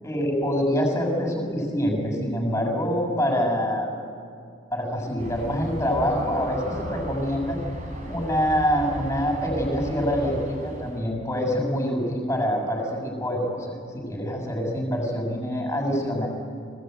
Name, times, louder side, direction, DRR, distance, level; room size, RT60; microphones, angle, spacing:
voice 1, 0.0-4.0 4.7-7.6 8.1-16.3, equal, 10° left, 1 dB, 6.7 m, -25 dB
Aircraft, 5.2-11.0, equal, 40° right, 3.7 m, -37 dB
25.0 x 19.5 x 9.4 m, 2.4 s
head